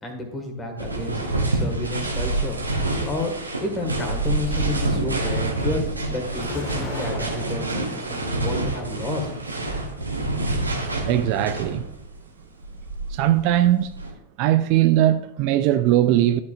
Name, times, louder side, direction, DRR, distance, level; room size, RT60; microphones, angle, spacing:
voice 1, 0.0-2.6 3.1-9.3, left 2 dB, 15° left, 1.8 m, -31 dB
sound 1, 0.8-12.0 12.6-14.1, right 2 dB, 80° right, 1.3 m, -27 dB
Explosion, 6.4-8.0 8.6-9.5, left 2 dB, 30° left, 1.9 m, -37 dB
voice 2, 11.0-11.8 13.1-13.9 14.4-16.4, right 13 dB, 45° right, 0.3 m, -19 dB
12.5 x 5.1 x 2.5 m
figure-of-eight pair, 90°, 0 cm